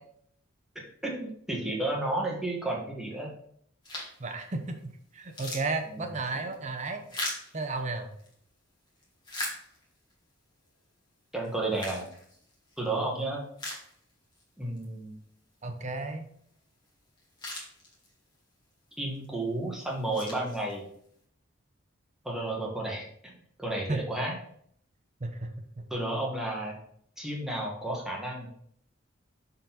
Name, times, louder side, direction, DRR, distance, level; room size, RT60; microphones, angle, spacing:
voice 1, 0.7-3.3 5.9-6.0 11.3-12.1 12.8-13.4 14.6-15.2 19.0-20.8 22.2-23.3 23.6-24.4 25.9-26.7 27.2-28.5, right 2 dB, ahead, -3 dB, 1.4 m, -32 dB
sound 1, 3.8-4.3 4.8-4.9 5.2-8.3 8.9-10.1 10.7-10.8 11.4-12.8 13.2-13.3 13.6-14.4 14.8-14.9 16.9-17.0 17.2-18.3 18.9-19.3 19.8-21.1, left 1 dB, 20° left, 1.7 m, -40 dB
voice 2, 4.2-4.8 5.1-7.1 7.5-8.1 15.6-16.2 23.9-24.0 25.2-25.8, right 3 dB, 35° right, 6 dB, 0.8 m, -33 dB
6.7 x 4.0 x 4.1 m, 0.65 s
head